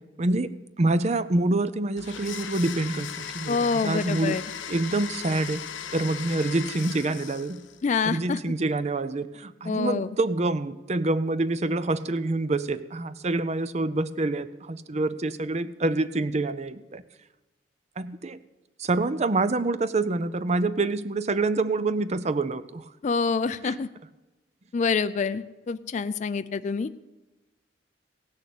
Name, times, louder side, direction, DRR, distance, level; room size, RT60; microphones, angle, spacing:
voice 1, 0.2-0.5 0.8-4.4 4.7-5.6 5.9-7.6 8.0-17.0 18.0-18.4 18.8-22.8 23.6-23.8, right 2 dB, 35° right, 14 dB, 0.5 m, -26 dB
Domestic sounds home sounds, 2.0-7.8, left 8 dB, 85° left, 0.8 m, -37 dB
voice 2, 3.5-4.4 7.8-8.5 9.7-10.1 23.0-23.9 24.7-26.9, left 5 dB, 40° left, 12 dB, 0.3 m, -26 dB
16.5 x 6.5 x 8.3 m, 1.1 s
head